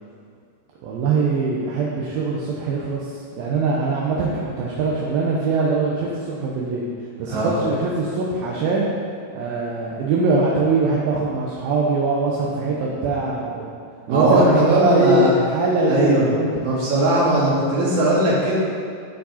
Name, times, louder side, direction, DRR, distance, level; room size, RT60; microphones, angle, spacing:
voice 1, 0.8-6.9 7.2-8.9 9.3-13.7 14.1-16.6, right 3 dB, 70° right, -4 dB, 2.4 m, -22 dB
voice 2, 7.3-7.6 14.1-15.3 15.9-16.3 16.6-18.6, right 1 dB, 50° right, -8 dB, 3.5 m, -19 dB
14.0 x 5.3 x 4.2 m, 2.3 s
omnidirectional pair, 4.8 m